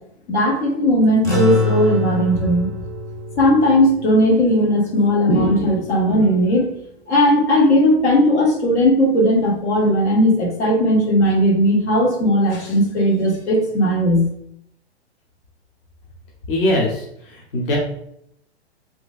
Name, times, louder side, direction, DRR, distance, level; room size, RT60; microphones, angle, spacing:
voice 1, 0.3-2.7 3.4-6.7 7.1-14.3, equal, 80° left, -1 dB, 1.1 m, -17 dB
sound 1, 1.2-5.9, left 3 dB, 10° left, 0.4 m, -26 dB
voice 2, 16.5-17.8, left 1 dB, 55° left, -2 dB, 0.9 m, -21 dB
3.0 x 2.7 x 2.3 m, 0.73 s
hypercardioid pair, 130°, 33 cm